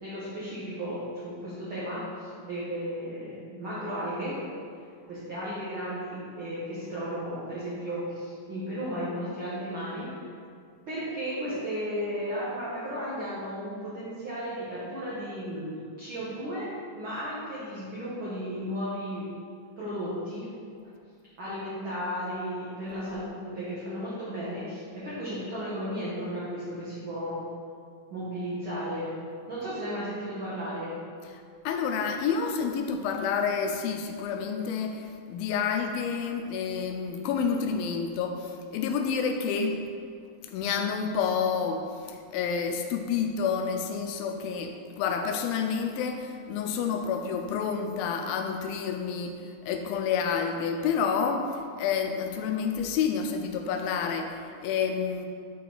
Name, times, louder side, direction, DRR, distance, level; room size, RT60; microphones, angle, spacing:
voice 1, 0.0-4.4 5.1-10.1 10.9-19.3 19.8-20.5 21.4-27.4 28.1-29.1 29.5-31.0, equal, 55° right, -9 dB, 1.5 m, -34 dB
voice 2, 31.7-39.8 40.5-49.4 49.6-55.3, left 6 dB, 85° left, 5 dB, 2.4 m, -29 dB
8.9 x 4.7 x 3.9 m, 2.2 s
omnidirectional pair, 4.1 m